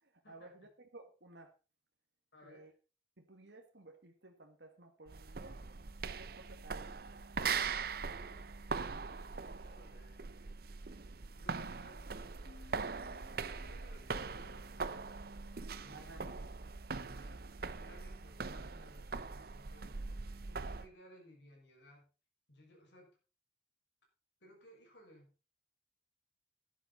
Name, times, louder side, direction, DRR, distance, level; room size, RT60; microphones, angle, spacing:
voice 1, 0.0-1.5 2.4-2.7 3.2-5.6 6.2-7.0 15.9-16.2, right 2 dB, 70° right, 4 dB, 1.7 m, -56 dB
voice 2, 2.3-2.8 8.0-8.5 9.5-10.2 11.4-12.1 13.3-15.3 15.8-16.3 17.0-19.9 20.5-22.1 22.5-23.2 24.4-25.3, left 1 dB, 70° left, 1 dB, 6.1 m, -60 dB
sound 1, 5.1-20.9, right 5 dB, 55° right, 0.7 m, -41 dB
sound 2, 12.4-16.0, left 6 dB, 45° left, 6.6 m, -63 dB
12.5 x 11.0 x 4.2 m, 0.33 s
head